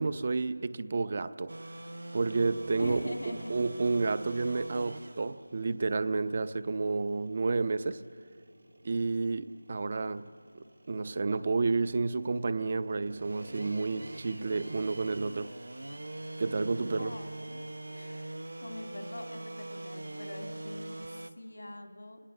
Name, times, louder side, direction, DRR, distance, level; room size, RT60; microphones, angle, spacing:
voice 1, 0.0-1.5 2.1-3.1 3.5-8.0 8.8-10.2 10.9-15.5 16.4-17.1, right 3 dB, 35° right, 14 dB, 0.6 m, -30 dB
sound 1, 1.5-21.3, right 1 dB, 85° right, 0.9 m, -45 dB
voice 2, 2.8-3.5 17.0-22.2, left 1 dB, 75° left, 5 dB, 2.1 m, -43 dB
30.0 x 20.0 x 7.1 m, 2.2 s
figure-of-eight pair, 170°, 0 cm